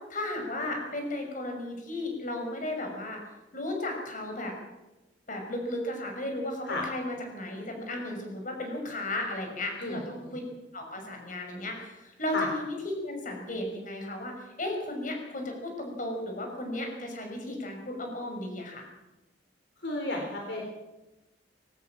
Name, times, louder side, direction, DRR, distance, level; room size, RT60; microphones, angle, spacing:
voice 1, 0.1-3.2 3.5-4.5 5.3-10.4 10.7-18.9, left 1 dB, 45° left, 3 dB, 6.0 m, -35 dB
voice 2, 9.8-10.3 12.3-12.5 19.8-20.6, left 2 dB, 65° left, 0 dB, 3.8 m, -33 dB
21.0 x 18.0 x 7.4 m, 1.0 s
head